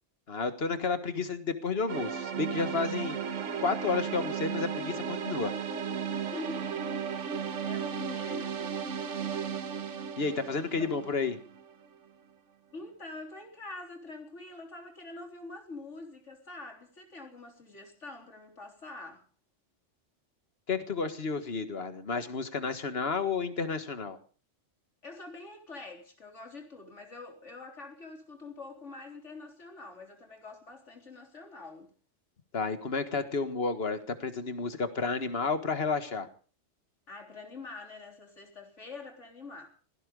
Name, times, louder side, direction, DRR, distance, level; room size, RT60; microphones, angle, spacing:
voice 1, 0.3-3.2 3.6-5.5 10.2-11.4 20.7-24.2 32.5-36.3, left 4 dB, 55° left, 1.8 m, -31 dB
sound 1, 1.9-11.9, right 7 dB, 85° right, 1.5 m, -35 dB
voice 2, 6.0-6.8 7.0-8.8 10.8-10.9 12.7-19.2 25.0-31.9 37.1-39.7, left 3 dB, 75° left, 4.1 m, -45 dB
17.5 x 15.0 x 5.3 m
omnidirectional pair, 1.2 m